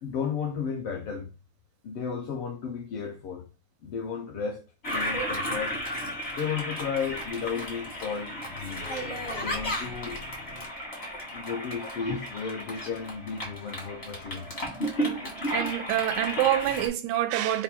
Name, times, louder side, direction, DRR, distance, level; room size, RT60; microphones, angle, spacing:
voice 1, 0.0-1.3 1.8-3.5 3.8-5.8 6.3-8.8 9.4-10.2 11.3-14.5, left 6 dB, 75° left, 1.4 m, -34 dB
Toilet flush, 4.8-16.9, equal, 50° left, 0.7 m, -33 dB
voice 2, 15.5-17.6, right 12 dB, 90° right, 2.0 m, -26 dB
4.6 x 2.2 x 4.3 m
omnidirectional pair, 3.3 m